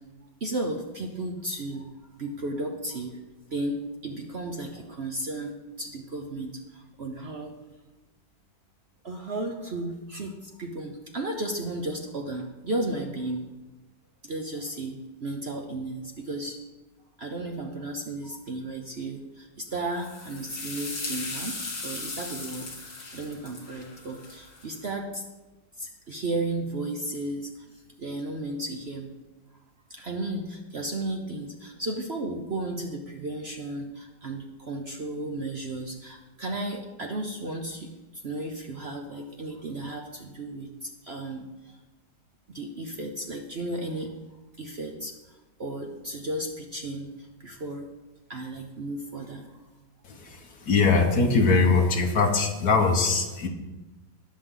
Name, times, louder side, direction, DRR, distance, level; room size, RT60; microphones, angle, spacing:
voice 1, 0.4-1.9 2.2-3.2 3.5-7.5 9.0-13.4 14.2-16.6 17.2-25.2 25.8-29.1 29.9-41.8 42.5-44.1 44.6-47.9 48.3-49.6, right 2 dB, 45° right, 3 dB, 0.9 m, -34 dB
sound 1, 19.9-24.8, left 3 dB, 80° left, 3.2 m, -38 dB
voice 2, 50.2-53.5, left 4 dB, 60° left, 4 dB, 1.6 m, -22 dB
19.0 x 6.6 x 3.9 m, 1.1 s
omnidirectional pair, 1.9 m